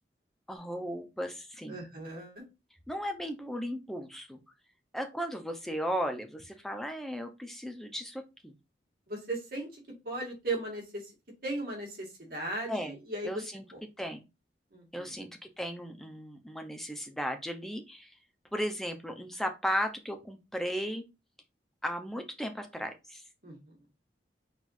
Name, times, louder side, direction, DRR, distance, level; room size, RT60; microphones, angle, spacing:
voice 1, 0.5-1.8 2.9-4.4 4.9-8.5 12.7-12.9 13.2-13.6 14.0-14.2 14.9-18.1 18.5-21.0 21.8-23.2, equal, ahead, 5 dB, 0.7 m, -36 dB
voice 2, 1.7-2.4 9.1-11.1 11.4-13.4 13.7-13.8 14.7-15.1 23.4-23.8, right 2 dB, 55° right, 0 dB, 1.9 m, -37 dB
4.4 x 4.0 x 2.6 m, 0.26 s
head